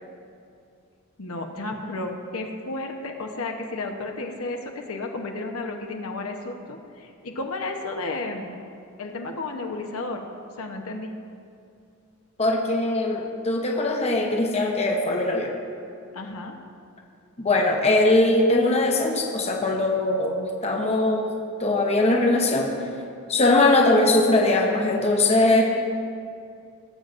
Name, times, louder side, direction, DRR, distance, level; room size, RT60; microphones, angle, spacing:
voice 1, 1.2-8.5 9.0-10.2 10.6-11.1 16.1-16.5, left 2 dB, 80° left, 2 dB, 0.9 m, -32 dB
voice 2, 12.4-15.5 17.4-21.3 21.6-22.9 23.3-25.6, left 2 dB, 30° left, 0 dB, 0.8 m, -21 dB
18.0 x 7.6 x 2.6 m, 2.4 s
head